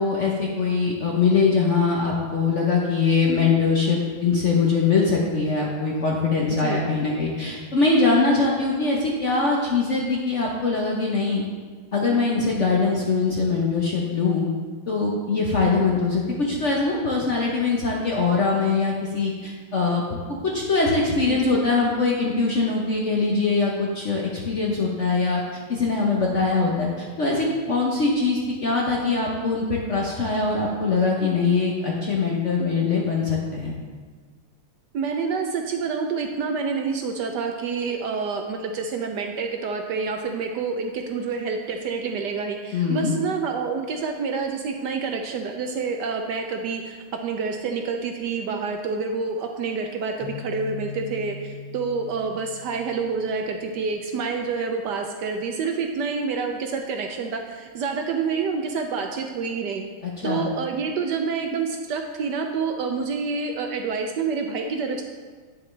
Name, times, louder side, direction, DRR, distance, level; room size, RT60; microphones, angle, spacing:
voice 1, 0.0-11.4 11.9-14.5 14.9-20.0 20.4-25.4 25.7-33.7 42.7-43.1 60.0-60.5, left 4 dB, 60° left, -2 dB, 0.7 m, -22 dB
voice 2, 21.3-21.6 34.9-59.8 60.2-65.0, right 5 dB, 75° right, 4 dB, 1.0 m, -28 dB
sound 1, 50.2-53.9, left 4 dB, 80° left, 2.5 m, -39 dB
9.7 x 6.8 x 3.2 m, 1.5 s
omnidirectional pair, 2.4 m